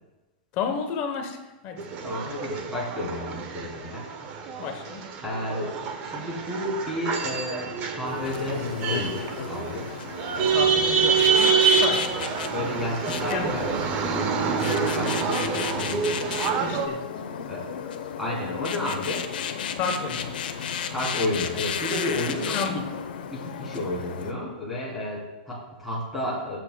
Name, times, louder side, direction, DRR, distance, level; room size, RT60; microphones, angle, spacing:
voice 1, 0.5-1.4 1.6-1.8 4.6-5.1 10.5-12.1 13.1-13.6 16.6-17.0 19.7-20.3 22.5-22.9, left 5 dB, 30° left, 6 dB, 0.9 m, -31 dB
sound 1, 1.8-16.9, right 5 dB, 30° right, 0.9 m, -27 dB
voice 2, 2.0-4.1 5.2-9.9 10.4-10.8 12.5-13.7 14.1-16.1 17.5-17.7 18.2-19.2 20.9-22.7 23.3-26.6, left 1 dB, 5° right, -6 dB, 3.3 m, -32 dB
Ant queen digging a nest, 8.1-24.3, left 7 dB, 80° left, 0.9 m, -34 dB
23.0 x 7.8 x 2.2 m, 1.1 s
supercardioid pair, 165°, 5 cm